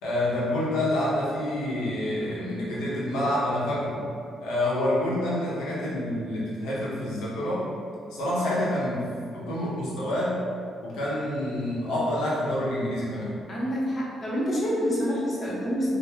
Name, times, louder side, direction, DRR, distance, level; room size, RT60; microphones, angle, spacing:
voice 1, 0.0-4.0 4.4-7.7 8.1-10.4 10.8-13.4, left 1 dB, 90° left, -7 dB, 0.9 m, -27 dB
voice 2, 13.5-16.0, equal, 35° left, -6 dB, 0.9 m, -27 dB
3.0 x 2.1 x 3.4 m, 2.3 s
cardioid pair, 90°, 0 cm